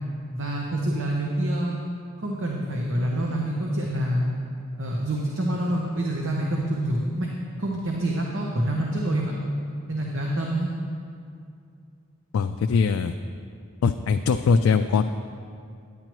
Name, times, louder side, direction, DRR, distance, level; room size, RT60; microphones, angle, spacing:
voice 1, 0.3-1.8 2.2-4.2 4.8-7.3 7.6-9.3 9.9-10.7, right 1 dB, 65° right, -1 dB, 0.9 m, -26 dB
voice 2, 12.3-13.2 13.8-15.0, left 5 dB, 80° left, 7 dB, 0.3 m, -21 dB
10.5 x 9.6 x 3.0 m, 2.3 s
head